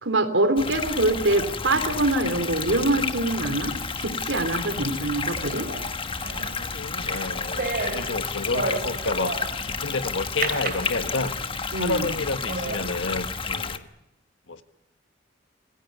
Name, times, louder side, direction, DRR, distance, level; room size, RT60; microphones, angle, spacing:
voice 1, 0.0-5.7 11.7-12.1, right 2 dB, 75° right, 9 dB, 3.2 m, -24 dB
sound 1, 0.6-13.8, left 4 dB, 30° left, 1.3 m, -31 dB
sound 2, 5.4-9.8 10.4-11.5 12.0-12.1 12.5-12.9, right 3 dB, 55° right, 2.9 m, -33 dB
voice 2, 6.7-11.3 11.7-13.9 14.5-14.6, left 3 dB, 85° left, 10 dB, 1.6 m, -30 dB
26.5 x 15.5 x 9.5 m, 0.91 s
head